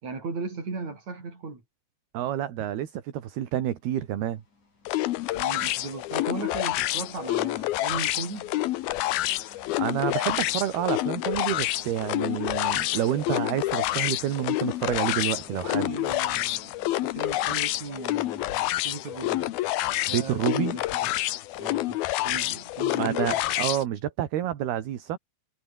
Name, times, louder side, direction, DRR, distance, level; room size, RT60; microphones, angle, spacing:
voice 1, 0.0-1.6 5.3-8.5 15.7-16.7 17.0-19.4 20.1-21.1 21.5-23.4, right 4 dB, 40° right, 7.7 m, -37 dB
voice 2, 2.1-4.4 9.4-9.5 9.8-15.9 20.1-20.8 23.0-25.2, right 11 dB, 70° right, 3.9 m, -29 dB
sound 1, 3.7-18.5, left 3 dB, 45° left, 9.1 m, -57 dB
sound 2, 4.9-23.8, left 16 dB, 75° left, 2.6 m, -28 dB
omnidirectional pair, 4.9 m